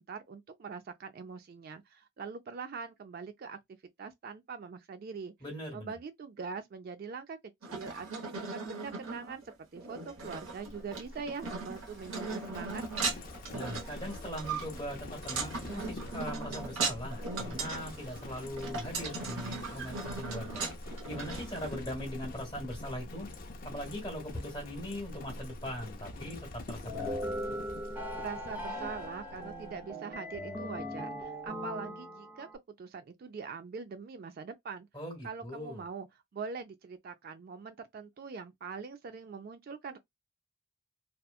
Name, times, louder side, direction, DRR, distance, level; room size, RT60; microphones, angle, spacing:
voice 1, 0.0-3.6 4.0-5.3 5.7-7.4 7.7-9.4 9.7-12.8 28.2-32.5 32.8-34.9 35.2-36.1 36.3-40.0, right 5 dB, 45° right, 0.3 m, -43 dB
voice 2, 5.4-6.0 13.5-20.7 21.1-23.3 23.6-27.2 34.9-35.8, equal, 20° left, 1.3 m, -40 dB
sound 1, 7.6-21.7, right 4 dB, 75° right, 1.0 m, -38 dB
Livestock farm animals working animals, 10.2-29.9, left 1 dB, 45° left, 0.5 m, -45 dB
sound 2, 26.9-32.6, equal, 10° right, 0.7 m, -39 dB
2.8 x 2.2 x 2.3 m
head